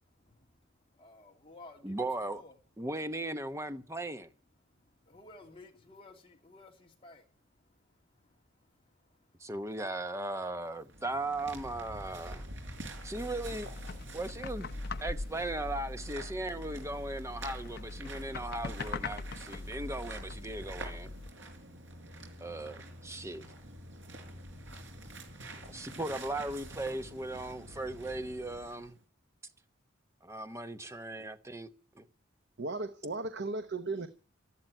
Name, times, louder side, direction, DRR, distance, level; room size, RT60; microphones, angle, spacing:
voice 1, 0.2-0.5 0.9-2.6 4.6-7.3 7.7-9.5 21.1-22.3, left 2 dB, 30° left, 3.0 m, -57 dB
voice 2, 1.8-2.4 2.8-4.3 9.4-12.5 13.0-13.7 14.1-14.7 15.0-21.1 22.4-23.5 25.7-29.0 30.2-31.7 32.0-32.1, right 2 dB, 15° right, 0.9 m, -37 dB
sound 1, 10.7-29.0, right 1 dB, 75° right, 4.6 m, -48 dB
sound 2, 13.0-21.3, left 3 dB, 55° left, 0.8 m, -41 dB
voice 3, 32.6-34.1, right 3 dB, 55° right, 1.0 m, -36 dB
13.0 x 12.0 x 9.1 m
head